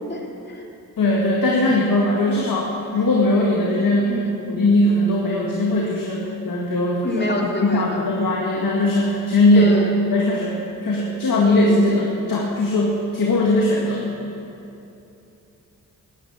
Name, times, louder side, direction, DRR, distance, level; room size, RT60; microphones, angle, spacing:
voice 1, 0.1-0.6 1.6-1.8 4.1-4.3 7.0-8.1 9.5-9.9, left 2 dB, 30° left, 0 dB, 2.7 m, -25 dB
voice 2, 1.0-4.2 4.5-9.8 10.1-10.6 10.8-14.0, left 1 dB, 65° left, -2 dB, 2.0 m, -19 dB
12.0 x 10.5 x 8.6 m, 2.8 s
cardioid pair, 60°, 37 cm